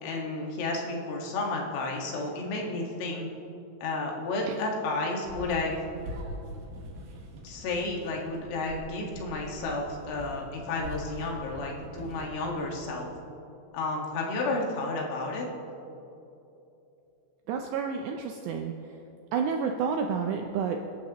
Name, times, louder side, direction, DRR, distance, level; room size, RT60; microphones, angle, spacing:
voice 1, 0.0-3.3 3.8-5.7 7.4-13.1 13.7-15.5, left 2 dB, 80° left, -1 dB, 4.3 m, -32 dB
sound 1, 5.3-13.0, equal, 60° right, 3.0 m, -43 dB
voice 2, 17.5-18.7 19.3-20.8, right 6 dB, 80° right, 3 dB, 2.5 m, -29 dB
28.0 x 11.5 x 3.0 m, 2.9 s
omnidirectional pair, 5.7 m